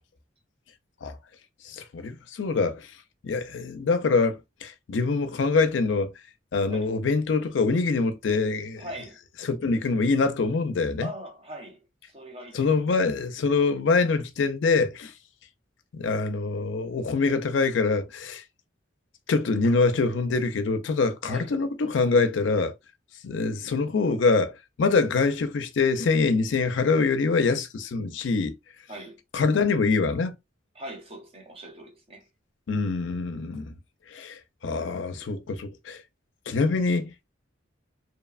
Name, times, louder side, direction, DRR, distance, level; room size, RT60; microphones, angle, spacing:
voice 1, 1.6-3.0 3.2-6.1 6.5-8.8 9.4-11.1 12.5-15.1 15.9-18.4 19.3-22.7 23.2-28.6 29.3-30.4 32.7-33.8 34.1-36.0 36.5-37.1, left 4 dB, 70° left, 0.4 m, -24 dB
voice 2, 8.8-9.2 11.0-12.8 21.2-21.5 28.9-29.2 30.7-32.3, right 1 dB, 30° right, 0.6 m, -41 dB
2.9 x 2.1 x 2.3 m
head